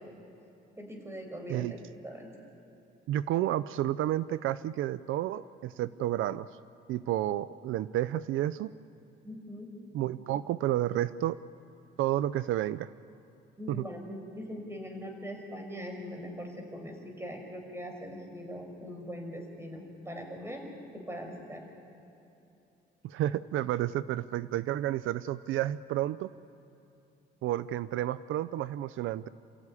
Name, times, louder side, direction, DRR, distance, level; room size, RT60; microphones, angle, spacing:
voice 1, 0.8-1.8 2.0-2.3 9.2-9.7 13.6-20.7 20.9-21.6, equal, 15° right, 3 dB, 5.7 m, -41 dB
voice 2, 3.1-6.5 6.9-8.7 9.9-11.4 12.0-12.9 13.7-13.8 23.0-26.3 27.4-29.3, right 13 dB, 85° right, 16 dB, 0.5 m, -31 dB
28.0 x 14.5 x 9.8 m, 2.9 s
cardioid pair, 90°, 20 cm